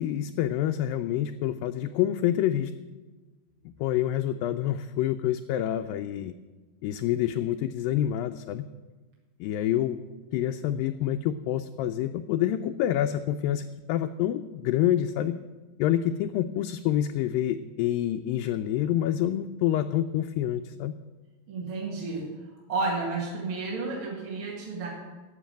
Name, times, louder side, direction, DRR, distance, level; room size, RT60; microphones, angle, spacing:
voice 1, 0.0-2.7 3.7-6.3 6.8-8.7 9.4-10.0 10.3-15.4 15.8-21.0, left 11 dB, 85° left, 7 dB, 2.0 m, -27 dB
voice 2, 21.5-22.3 22.7-24.9, right 3 dB, 40° right, -4 dB, 2.2 m, -31 dB
12.5 x 6.5 x 8.9 m, 1.2 s
omnidirectional pair, 4.4 m